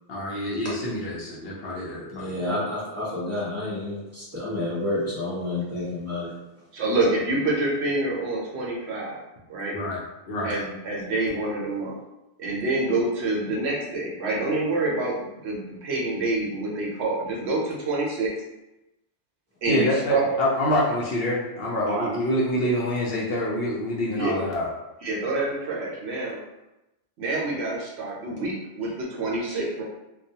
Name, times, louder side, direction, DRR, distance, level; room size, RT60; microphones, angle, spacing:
voice 1, 0.1-2.5 9.7-10.0 10.3-10.6 19.7-24.7, left 1 dB, 60° left, -5 dB, 0.7 m, -26 dB
voice 2, 2.1-6.4, left 2 dB, 15° right, -8 dB, 0.7 m, -29 dB
voice 3, 6.7-9.2 9.5-9.8 10.4-12.0 12.4-18.3 19.6-20.2 21.9-22.1 24.1-24.4 25.0-26.4 27.2-29.8, right 2 dB, 70° right, -3 dB, 0.9 m, -27 dB
2.3 x 2.2 x 2.7 m, 0.95 s
omnidirectional pair, 1.2 m